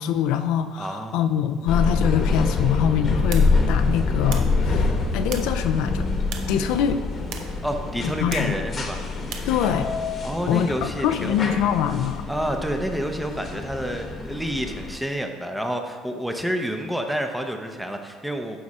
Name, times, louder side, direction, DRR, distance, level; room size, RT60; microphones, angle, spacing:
voice 1, 0.0-6.1 6.5-7.0 8.0-8.5 9.4-9.9 10.5-12.3, left 9 dB, 80° left, 8 dB, 0.5 m, -24 dB
voice 2, 0.8-1.2 7.6-9.0 10.2-11.5 12.3-18.6, equal, 5° right, 4 dB, 0.7 m, -29 dB
sound 1, 1.7-15.0, left 3 dB, 30° left, 1.1 m, -26 dB
sound 2, 2.5-9.9, right 6 dB, 70° right, 0.8 m, -40 dB
11.0 x 4.9 x 4.2 m, 1.5 s
cardioid pair, 150°, 0 cm